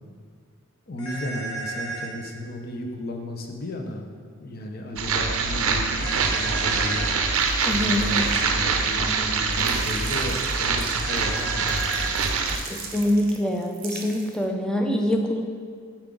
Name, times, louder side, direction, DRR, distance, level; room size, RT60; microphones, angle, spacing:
voice 1, 0.9-4.1 4.4-7.1 7.7-12.2, left 1 dB, 45° left, 3 dB, 0.7 m, -34 dB
sound 1, 1.0-2.1 6.0-7.1 11.0-12.2, right 3 dB, 75° left, 1.5 m, -33 dB
sound 2, 5.0-12.6, right 4 dB, 85° right, 0.6 m, -24 dB
sound 3, 7.3-9.2 9.5-14.5, right 4 dB, 45° right, 0.7 m, -40 dB
voice 2, 7.7-8.1 12.5-15.4, left 1 dB, 5° left, 1 dB, 0.5 m, -25 dB
7.2 x 4.7 x 3.8 m, 2.1 s
head